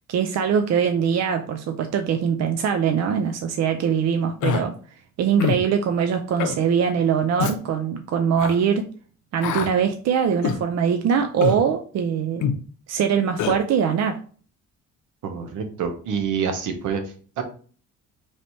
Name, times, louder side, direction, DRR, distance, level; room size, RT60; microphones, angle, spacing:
voice 1, 0.1-4.7 5.2-8.9 9.3-12.5 12.9-14.2, right 7 dB, 60° right, 0.5 m, -22 dB
Human voice, 4.4-4.6 5.4-5.6 6.4-6.6 7.4-7.6 8.4-8.5 9.4-9.7 10.4-10.6 11.4-11.6 12.4-12.6 13.4-13.6, left 7 dB, 80° left, 0.6 m, -24 dB
voice 2, 15.2-17.0 17.4-17.5, right 6 dB, 80° right, 0.9 m, -26 dB
3.2 x 2.7 x 4.3 m
cardioid pair, 90°, 30 cm